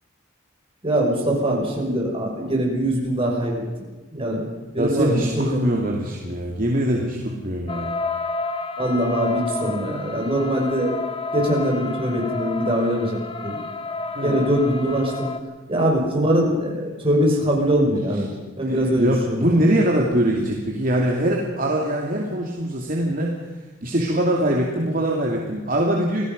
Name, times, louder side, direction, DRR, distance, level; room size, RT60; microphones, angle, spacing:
voice 1, 0.8-3.5 4.1-4.5 4.7-5.6 8.8-11.0 11.3-13.6 14.2-15.3 15.7-19.6, equal, 30° right, -1 dB, 5.9 m, -22 dB
voice 2, 4.8-7.9 14.1-14.4 18.7-23.6 23.8-26.2, right 1 dB, 45° right, -1 dB, 2.7 m, -23 dB
sound 1, 7.7-15.4, left 3 dB, 25° left, 1.3 m, -30 dB
27.0 x 18.5 x 5.4 m, 1.2 s
head